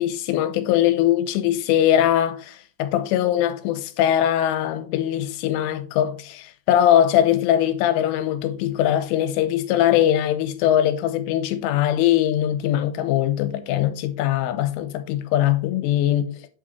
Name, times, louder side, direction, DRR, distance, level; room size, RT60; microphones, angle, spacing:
voice 1, 0.0-16.5, left 11 dB, 85° left, 3.1 m, -21 dB
8.4 x 5.1 x 4.0 m
omnidirectional pair, 5.6 m